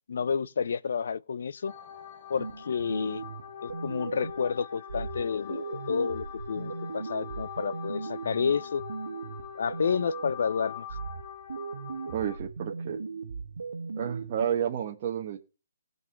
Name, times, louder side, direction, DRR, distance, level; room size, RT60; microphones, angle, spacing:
voice 1, 0.1-1.7 2.3-3.2 3.6-8.8 9.6-10.9, left 6 dB, 65° left, 0.6 m, -30 dB
sound 1, 1.7-12.4, left 8 dB, 45° left, 1.6 m, -43 dB
sound 2, 2.4-4.5 4.9-10.5 10.9-14.5, right 4 dB, 75° right, 1.4 m, -38 dB
voice 2, 12.1-13.0 13.9-15.4, right 9 dB, 40° right, 1.2 m, -31 dB
16.5 x 5.5 x 7.0 m
hypercardioid pair, 150°, 0 cm